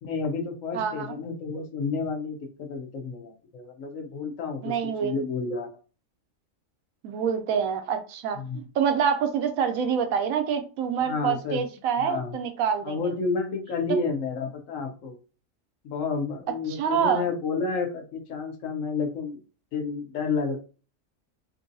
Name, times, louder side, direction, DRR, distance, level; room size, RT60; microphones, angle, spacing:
voice 1, 0.0-4.7 5.0-5.7 8.4-8.6 11.0-11.6 12.0-12.4 12.8-15.1 15.8-19.4 19.7-20.6, left 4 dB, 75° left, 4 dB, 1.1 m, -30 dB
voice 2, 0.7-1.2 4.6-5.1 7.0-13.0 16.8-17.2, right 7 dB, 85° right, 7 dB, 1.0 m, -26 dB
3.0 x 2.7 x 2.6 m, 0.35 s
omnidirectional pair, 1.4 m